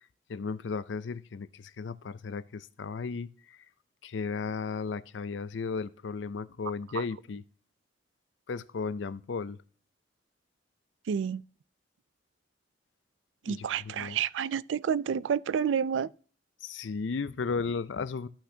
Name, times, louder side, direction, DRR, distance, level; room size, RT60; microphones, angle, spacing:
voice 1, 0.3-3.6 4.0-7.4 8.5-9.6 13.5-14.2 16.6-18.3, left 5 dB, 75° left, 0.5 m, -35 dB
voice 2, 11.1-11.4 13.5-16.1, right 7 dB, 80° right, 0.3 m, -29 dB
13.5 x 5.9 x 2.8 m
head